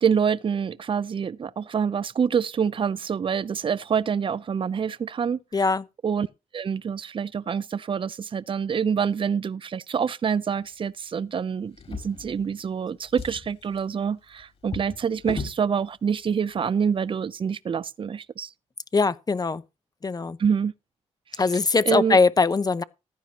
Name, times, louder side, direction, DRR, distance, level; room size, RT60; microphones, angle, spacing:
voice 1, 0.0-5.4 6.0-6.3 6.5-18.5 20.4-20.7 21.3-21.4 21.9-22.2, right 7 dB, 45° right, 0.6 m, -26 dB
voice 2, 5.5-5.8 18.9-19.6 20.0-20.4 21.4-22.8, left 4 dB, 30° left, 0.9 m, -21 dB
Drawer open or close, 11.7-12.7 13.0-15.6 16.5-16.7 17.1-17.2, left 4 dB, 50° left, 4.5 m, -38 dB
15.0 x 11.0 x 3.0 m
cardioid pair, 70°, 12 cm